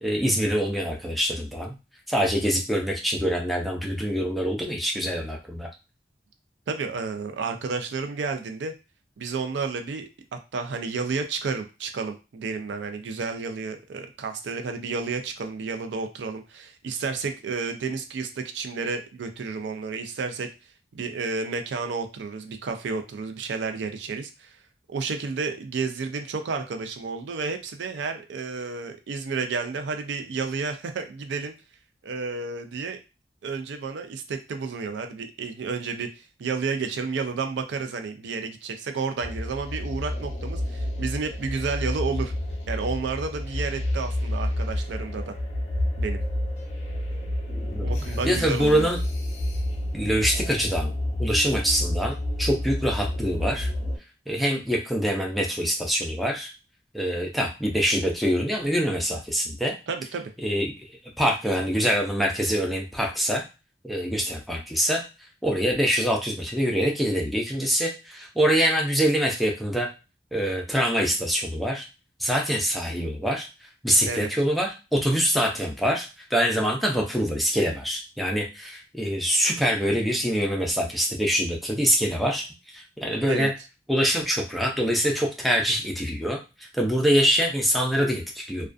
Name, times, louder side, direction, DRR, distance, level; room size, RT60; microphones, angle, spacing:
voice 1, 0.0-1.7 2.1-5.7 47.7-47.9 48.2-49.0 49.9-50.9 51.2-53.7 54.3-56.5 56.9-59.7 60.4-60.7 61.2-63.4 63.8-65.0 65.4-69.9 70.3-71.9 72.2-73.5 73.8-82.4 82.7-83.5 83.9-88.7, equal, ahead, -1 dB, 0.4 m, -24 dB
voice 2, 6.7-8.7 9.2-20.5 20.9-24.6 24.9-31.5 32.0-33.0 33.4-36.1 36.4-42.3 42.7-45.4 46.0-46.2 47.8-48.9 59.9-60.3 74.0-74.3 83.3-83.5, right 4 dB, 85° right, 7 dB, 0.4 m, -31 dB
sound 1, 39.2-54.0, left 1 dB, 40° left, 0.7 m, -29 dB
2.3 x 2.2 x 2.4 m, 0.29 s
head